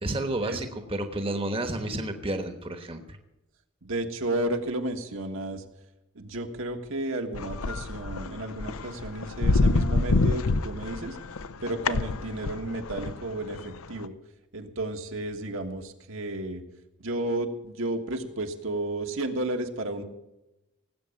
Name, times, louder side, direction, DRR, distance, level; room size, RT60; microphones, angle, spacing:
voice 1, 0.0-3.2, right 1 dB, 25° right, 6 dB, 1.1 m, -31 dB
voice 2, 3.8-5.6 6.1-11.2 11.6-14.1 14.5-16.6 17.0-20.0, right 1 dB, 65° right, 4 dB, 1.6 m, -32 dB
sound 1, 7.3-13.1 13.5-13.7 14.0-14.1, left 3 dB, 80° left, 0.7 m, -26 dB
18.5 x 8.4 x 7.1 m, 0.93 s
head